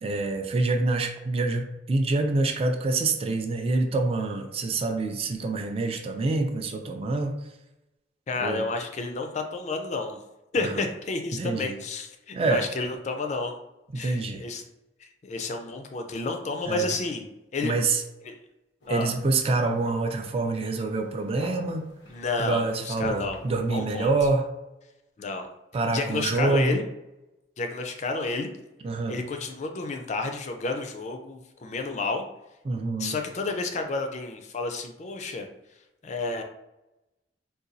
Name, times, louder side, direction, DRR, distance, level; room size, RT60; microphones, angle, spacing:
voice 1, 0.0-7.4 8.4-8.6 10.6-10.8 11.3-11.8 12.3-12.6 13.9-14.4 16.7-16.9 17.6-18.0 18.9-21.9 22.4-24.5 25.7-26.8 28.8-29.2 32.7-33.2 35.2-35.3, right 3 dB, 35° right, 5 dB, 0.3 m, -26 dB
voice 2, 8.3-10.2 10.5-13.5 13.9-14.6 15.0-17.2 17.5-17.7 18.3-18.4 18.9-19.1 22.1-23.4 23.7-24.1 25.2-25.5 25.9-26.8 27.6-28.5 29.1-32.2 33.0-35.5 36.0-36.4, left 3 dB, 40° left, 5 dB, 0.4 m, -31 dB
sound 1, 18.8-24.3, left 1 dB, 85° left, 0.7 m, -45 dB
4.0 x 2.2 x 2.6 m, 0.95 s
head